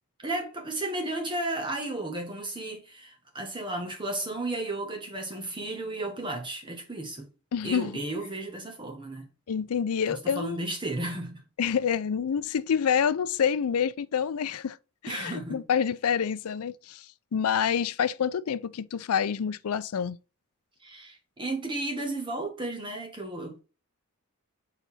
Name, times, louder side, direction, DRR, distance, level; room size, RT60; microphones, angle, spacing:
voice 1, 0.2-7.3 7.6-9.3 10.1-11.4 15.1-15.6 20.8-23.6, right 2 dB, 20° right, 1.4 m, -34 dB
voice 2, 7.5-8.0 9.5-10.6 11.6-14.8 15.0-17.1 17.3-20.2, left 7 dB, 75° left, 0.4 m, -27 dB
4.8 x 3.9 x 5.6 m
head